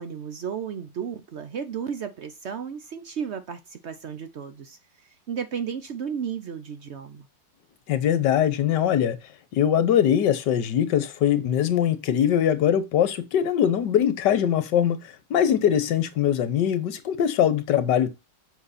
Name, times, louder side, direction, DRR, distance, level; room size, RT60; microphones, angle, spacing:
voice 1, 0.0-4.8 5.3-7.3, right 7 dB, 85° right, 0.6 m, -33 dB
voice 2, 7.9-9.2 9.5-18.1, left 9 dB, 65° left, 1.5 m, -22 dB
7.7 x 5.7 x 4.2 m
omnidirectional pair, 2.2 m